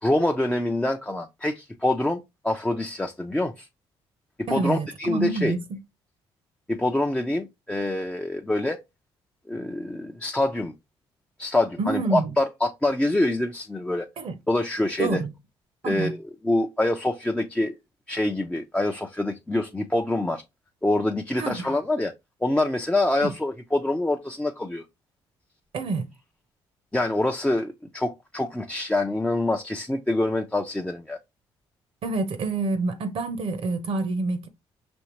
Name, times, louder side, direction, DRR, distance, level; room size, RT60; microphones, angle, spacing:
voice 1, 0.0-3.7 4.4-5.6 6.7-8.8 9.5-10.7 11.4-14.1 14.5-15.2 15.8-17.8 18.1-20.4 20.8-22.1 22.4-24.8 26.9-31.2, left 1 dB, 10° left, 0.5 m, -25 dB
voice 2, 4.5-5.8 11.8-12.3 14.2-14.3 15.0-15.3 15.8-16.1 21.4-21.7 23.2-23.3 25.7-26.0 32.0-34.5, right 3 dB, 60° right, 0.8 m, -27 dB
5.3 x 2.8 x 3.0 m
supercardioid pair, 65°, 11 cm